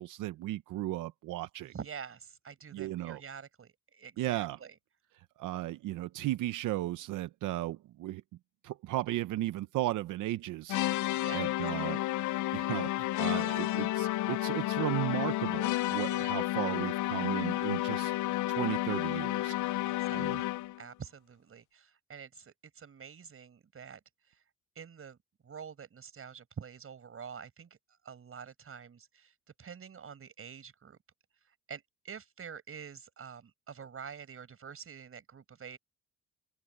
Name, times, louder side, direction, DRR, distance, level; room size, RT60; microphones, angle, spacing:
voice 1, 0.0-1.7 2.7-3.2 4.2-4.6 5.2-8.2 8.6-12.0 12.5-18.1 18.5-19.6 20.1-20.4, right 16 dB, 85° right, 0.8 m, -35 dB
voice 2, 1.6-4.7 11.1-11.5 19.8-20.5 20.8-24.0 24.8-25.2 25.4-27.7 28.0-29.3 29.6-31.0 31.7-35.8, right 7 dB, 45° right, 6.0 m, -47 dB
sound 1, 10.7-20.8, left 16 dB, 75° left, 0.5 m, -31 dB
open air
cardioid pair, 90°, 30 cm